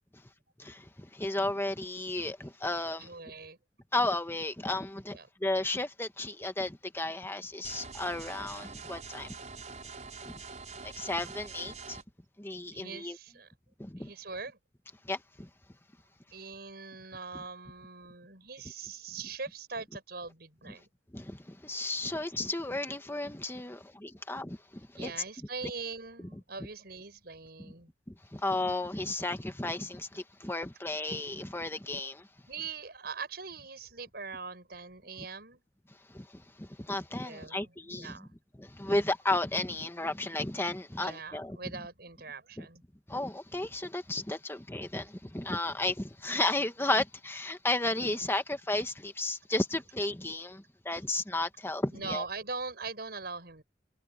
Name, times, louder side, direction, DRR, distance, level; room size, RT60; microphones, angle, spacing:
voice 1, 0.6-3.1 3.9-9.3 10.3-10.4 10.8-12.0 12.4-13.2 13.8-14.1 15.0-15.5 17.3-17.4 20.7-20.8 21.1-25.1 28.1-32.3 36.1-38.3 38.6-41.6 42.6-42.7 43.1-52.2, left 2 dB, 15° left, 1.3 m, -33 dB
voice 2, 3.0-3.6 5.1-5.3 12.7-13.5 14.0-14.6 16.3-20.9 25.0-27.9 32.5-35.6 37.3-38.3 41.0-42.8 51.9-53.6, right 4 dB, 65° right, 6.5 m, -42 dB
sound 1, 7.6-12.0, right 4 dB, 45° right, 5.7 m, -45 dB
head